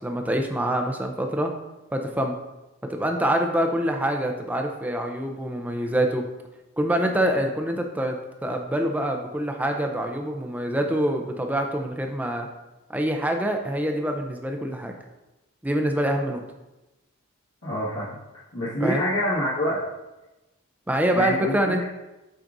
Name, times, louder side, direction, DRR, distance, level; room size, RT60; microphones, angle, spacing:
voice 1, 0.0-1.5 1.9-2.3 2.9-6.2 6.8-8.2 8.4-12.5 12.9-14.9 15.6-16.4 18.8-19.1 20.9-21.8, right 1 dB, 5° right, 3 dB, 0.5 m, -25 dB
voice 2, 17.6-18.2 18.5-19.8 21.1-21.8, equal, 65° left, -11 dB, 1.9 m, -26 dB
8.7 x 5.0 x 2.6 m, 1.0 s
head